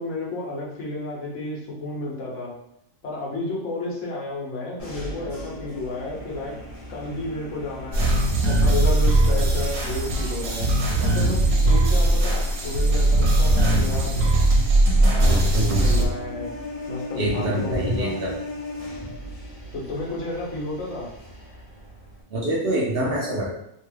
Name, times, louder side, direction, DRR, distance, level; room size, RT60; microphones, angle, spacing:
voice 1, 0.0-2.5 3.0-6.6 6.9-8.1 8.4-10.6 11.0-14.5 15.0-16.5 16.9-18.2 19.7-21.1, left 2 dB, 70° left, -3 dB, 1.1 m, -32 dB
sound 1, 4.8-22.2, left 1 dB, 35° left, 0.7 m, -38 dB
sound 2, 7.9-16.1, right 1 dB, 85° right, 1.1 m, -19 dB
voice 2, 17.2-18.3 22.3-23.5, right 1 dB, 60° right, -3 dB, 0.7 m, -25 dB
2.8 x 2.3 x 3.1 m, 0.78 s
omnidirectional pair, 1.3 m